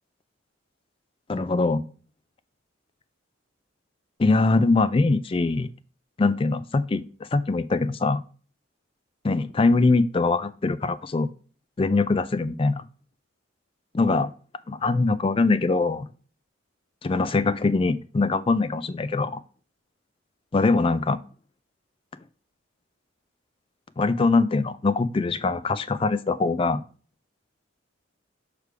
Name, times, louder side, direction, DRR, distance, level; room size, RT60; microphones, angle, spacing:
voice 1, 1.3-1.8 4.2-5.7 6.2-7.0 7.3-8.2 9.2-11.3 11.8-12.8 13.9-14.3 14.7-16.1 17.0-19.4 20.5-21.2 24.0-26.8, left 3 dB, 25° left, 14 dB, 0.3 m, -22 dB
6.7 x 3.3 x 4.7 m, 0.40 s
head